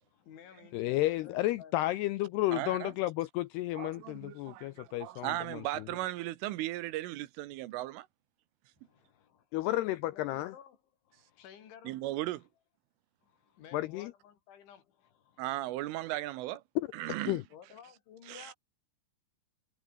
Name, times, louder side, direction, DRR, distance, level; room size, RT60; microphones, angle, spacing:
voice 1, 0.0-1.9 8.8-9.7 10.1-10.8 11.1-12.2 13.2-15.4 17.5-18.5, left 9 dB, 70° left, 5.5 m, -55 dB
voice 2, 0.7-5.6 9.5-10.5 13.7-14.1 16.8-16.9 17.3-17.4, left 16 dB, 90° left, 2.3 m, -32 dB
voice 3, 2.5-2.9 3.8-8.1 11.9-12.4 15.4-16.6 16.9-17.4 18.3-18.5, right 16 dB, 85° right, 3.7 m, -37 dB
omnidirectional pair, 5.6 m